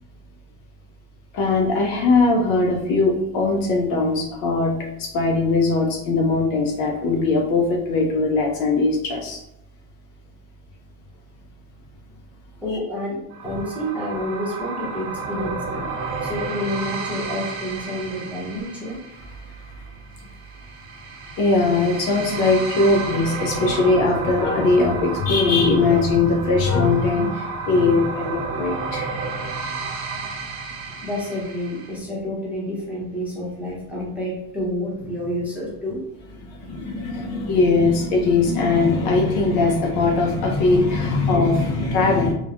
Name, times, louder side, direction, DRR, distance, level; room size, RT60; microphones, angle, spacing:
voice 1, 1.3-4.7 5.0-9.4 21.4-29.1 36.7-42.3, left 3 dB, 55° left, 1 dB, 0.6 m, -20 dB
voice 2, 12.6-15.8 16.2-19.0 28.7-28.9 31.0-36.0, left 1 dB, 5° right, -7 dB, 0.8 m, -29 dB
sound 1, 13.3-32.0, right 4 dB, 70° right, 0.7 m, -32 dB
3.1 x 2.1 x 2.4 m, 0.84 s
supercardioid pair, 125°, 43 cm